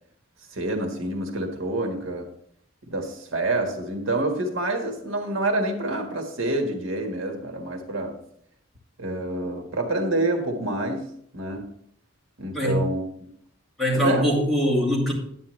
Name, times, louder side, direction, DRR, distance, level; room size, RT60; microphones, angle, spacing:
voice 1, 0.5-2.3 2.9-8.2 9.0-11.1 11.3-11.7 12.4-13.0 13.9-14.3, right 2 dB, 85° right, 1.6 m, -27 dB
voice 2, 12.5-12.9 13.8-15.1, equal, ahead, 2.5 m, -22 dB
9.6 x 9.5 x 3.2 m
head